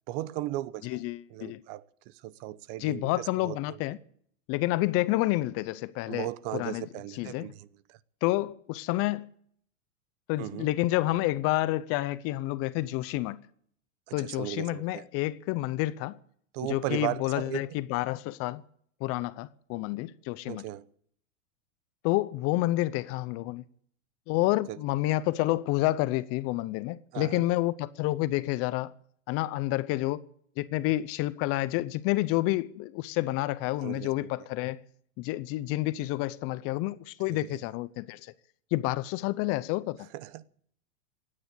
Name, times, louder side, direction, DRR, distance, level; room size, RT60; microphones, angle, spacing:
voice 1, 0.1-1.0 1.3-3.8 6.1-8.0 10.4-10.7 14.1-15.0 16.5-17.6 20.5-20.9 24.7-24.8 27.1-27.5 33.8-34.3 37.3-37.6 40.1-40.5, right 15 dB, 45° right, 1.0 m, -37 dB
voice 2, 0.8-1.6 2.8-4.0 4.5-6.3 6.5-6.8 7.2-7.5 8.2-9.3 10.3-13.4 14.1-16.2 16.7-18.6 19.0-20.6 22.0-23.6 24.3-28.9 29.3-30.2 30.6-34.8 35.2-38.2 38.7-40.1, left 17 dB, 40° left, 0.7 m, -29 dB
17.0 x 9.8 x 8.4 m
supercardioid pair, 135°, 38 cm